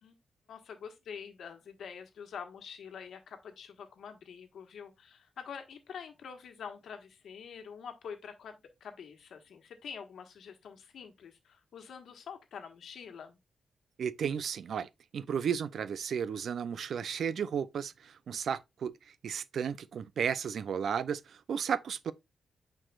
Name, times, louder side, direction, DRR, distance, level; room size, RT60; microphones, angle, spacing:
voice 1, 0.5-13.4, left 7 dB, 80° left, 1.3 m, -46 dB
voice 2, 14.0-18.9 19.2-22.1, right 7 dB, 70° right, 0.5 m, -34 dB
8.7 x 4.6 x 2.4 m
wide cardioid pair, 120°, 0 cm